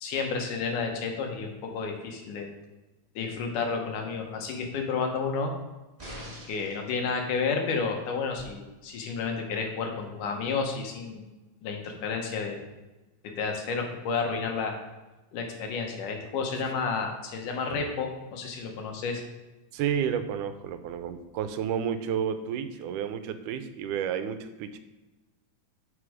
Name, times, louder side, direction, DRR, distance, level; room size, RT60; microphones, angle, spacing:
voice 1, 0.0-2.5 3.2-5.5 6.5-11.2 11.6-12.6 13.2-14.7 15.3-19.2, left 5 dB, 85° left, 3 dB, 2.8 m, -31 dB
sound 1, 6.0-6.8 8.4-8.5, equal, 15° right, 2.2 m, -42 dB
voice 2, 19.7-24.8, right 8 dB, 90° right, 10 dB, 2.2 m, -31 dB
9.8 x 5.8 x 5.0 m, 1.1 s
omnidirectional pair, 3.5 m